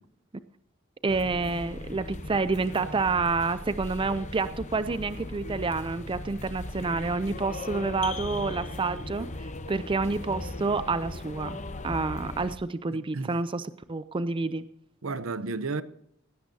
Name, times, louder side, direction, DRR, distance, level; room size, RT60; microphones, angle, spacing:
voice 1, 1.0-14.6, right 3 dB, 25° right, 0.4 m, -29 dB
sound 1, 1.1-12.6, left 2 dB, 35° left, 0.8 m, -38 dB
voice 2, 12.9-13.4 15.0-15.8, right 3 dB, 70° right, 0.8 m, -32 dB
17.0 x 16.5 x 2.8 m
head